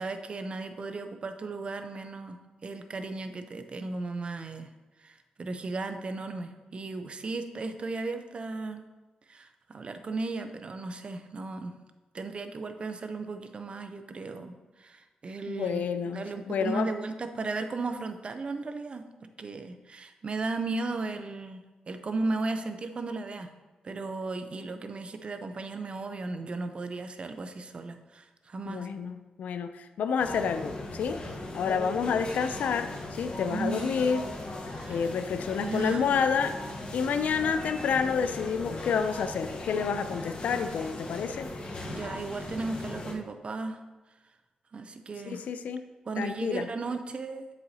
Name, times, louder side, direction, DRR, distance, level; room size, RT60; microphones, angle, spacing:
voice 1, 0.0-4.7 5.0-8.8 9.3-11.7 12.1-23.5 23.8-28.9 33.4-33.9 34.7-35.1 35.6-36.0 41.9-43.8 44.7-45.5 46.1-47.5, right 3 dB, 45° right, 8 dB, 0.6 m, -35 dB
voice 2, 15.5-16.9 28.7-31.2 31.5-34.2 34.9-36.6 36.9-41.5 45.2-45.9 46.2-46.7, left 6 dB, 85° left, 10 dB, 0.4 m, -29 dB
sound 1, 30.2-43.1, left 2 dB, 50° left, 1.1 m, -38 dB
7.8 x 6.3 x 2.8 m, 1.2 s
cardioid pair, 80°, 3 cm